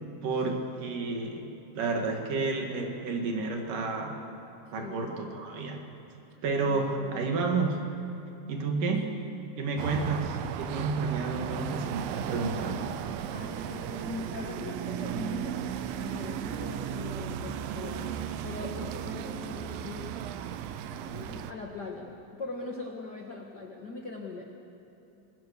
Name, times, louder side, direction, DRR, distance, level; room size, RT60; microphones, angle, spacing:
voice 1, 0.2-4.2 4.7-5.9 6.4-7.9 8.5-9.1 9.6-13.0, right 3 dB, 65° right, 2 dB, 3.4 m, -31 dB
voice 2, 4.7-5.1 6.6-7.3 9.1-9.2 9.8-9.9 13.3-20.2 21.0-24.4, left 3 dB, 55° left, 1 dB, 1.1 m, -41 dB
sound 1, 9.8-21.5, right 9 dB, 80° right, 2.5 m, -35 dB
26.0 x 21.0 x 6.8 m, 2.9 s
omnidirectional pair, 4.3 m